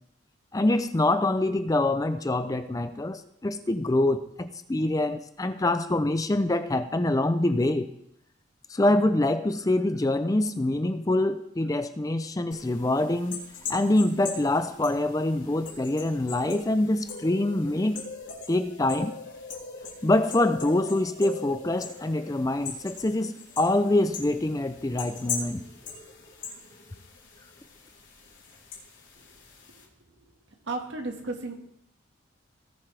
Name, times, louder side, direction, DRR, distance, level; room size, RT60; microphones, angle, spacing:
voice 1, 0.5-7.9 8.7-13.4 13.7-18.0 18.5-19.1 20.0-25.6, left 1 dB, 20° left, 10 dB, 0.4 m, -25 dB
sound 1, 12.5-29.8, left 5 dB, 75° left, 3.9 m, -41 dB
voice 2, 30.7-31.5, right 3 dB, 70° right, 3 dB, 1.7 m, -33 dB
18.0 x 7.0 x 3.4 m, 0.76 s
head